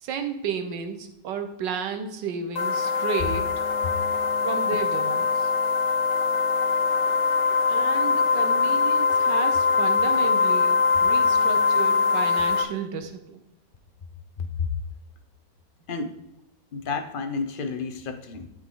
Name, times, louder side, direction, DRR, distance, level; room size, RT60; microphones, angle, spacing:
voice 1, 0.0-3.5 4.4-5.5 7.7-13.4, right 6 dB, 85° right, 7 dB, 1.6 m, -32 dB
sound 1, 2.6-12.6, left 5 dB, 85° left, 1.7 m, -22 dB
voice 2, 14.4-14.7 15.9-16.1 16.7-18.5, left 5 dB, 45° left, 8 dB, 0.7 m, -31 dB
12.5 x 4.9 x 3.8 m, 0.85 s
omnidirectional pair, 1.9 m